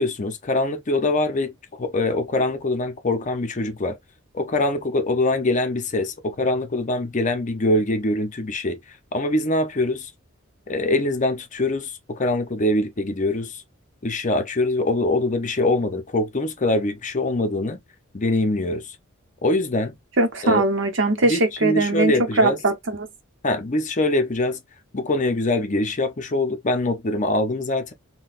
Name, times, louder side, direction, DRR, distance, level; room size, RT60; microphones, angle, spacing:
voice 1, 0.0-4.0 4.3-8.8 9.1-10.1 10.7-13.6 14.0-17.8 18.1-19.0 19.4-19.9 20.4-20.7 21.2-22.6 23.4-24.6 24.9-27.9, left 2 dB, 35° left, 0.6 m, -23 dB
voice 2, 20.2-23.1, right 2 dB, 60° right, 0.9 m, -21 dB
3.8 x 2.2 x 2.4 m
head